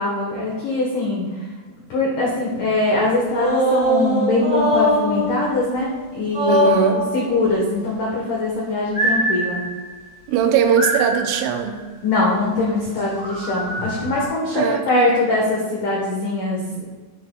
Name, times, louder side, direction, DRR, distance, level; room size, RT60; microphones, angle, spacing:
voice 1, 0.0-1.5 1.9-9.6 12.0-16.9, left 2 dB, 80° left, -3 dB, 1.8 m, -22 dB
sound 1, 3.3-6.0 6.3-7.4 8.9-9.9 10.8-11.6 13.0-14.3, right 1 dB, 15° right, 1.5 m, -22 dB
voice 2, 6.4-7.0 10.3-11.8 14.5-15.2, right 8 dB, 85° right, 6 dB, 3.2 m, -20 dB
11.0 x 8.8 x 2.3 m, 1.3 s
omnidirectional pair, 5.6 m